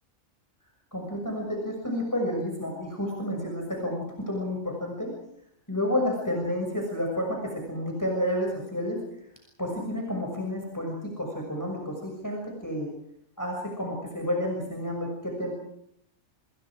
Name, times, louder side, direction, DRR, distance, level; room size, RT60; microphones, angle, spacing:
voice 1, 0.9-5.1 5.7-9.0 9.6-12.9 13.4-15.5, left 1 dB, 15° left, 0 dB, 6.3 m, -30 dB
28.0 x 27.0 x 4.9 m, 0.71 s
omnidirectional pair, 1.4 m